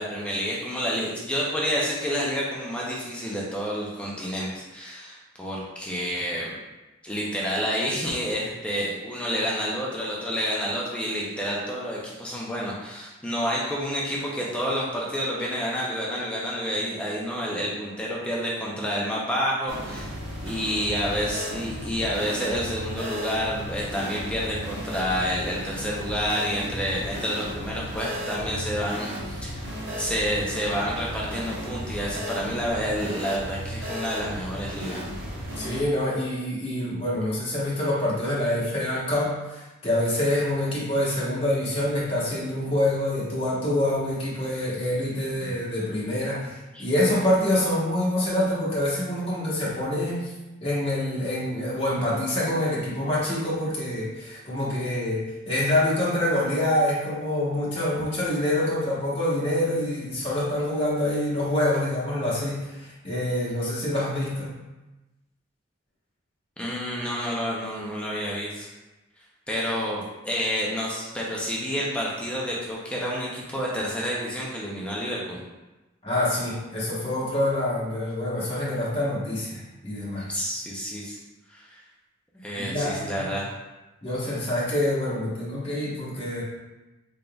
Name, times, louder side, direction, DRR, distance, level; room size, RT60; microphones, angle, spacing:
voice 1, 0.0-6.5 7.0-20.1 20.4-29.6 30.0-35.0 45.4-45.5 46.7-46.8 66.6-68.7 69.5-75.4 80.3-81.2 81.5-81.7 82.4-83.5, equal, 5° left, -5 dB, 0.5 m, -29 dB
sound 1, 19.7-35.8, equal, 70° right, 1.0 m, -34 dB
voice 2, 35.6-50.3 50.6-64.5 76.0-80.3 82.5-83.3 84.0-86.4, left 1 dB, 25° left, -8 dB, 1.1 m, -26 dB
3.8 x 3.5 x 2.3 m, 1.1 s
head